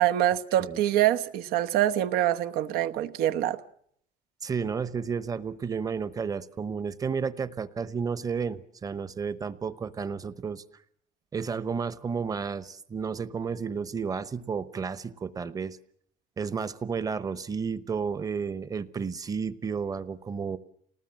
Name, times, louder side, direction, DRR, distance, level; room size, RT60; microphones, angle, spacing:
voice 1, 0.0-3.6, right 12 dB, 85° right, 1.1 m, -25 dB
voice 2, 4.4-10.6 11.3-15.8 16.4-20.6, right 6 dB, 25° right, 0.9 m, -32 dB
28.0 x 19.5 x 7.5 m
cardioid pair, 145°, 16 cm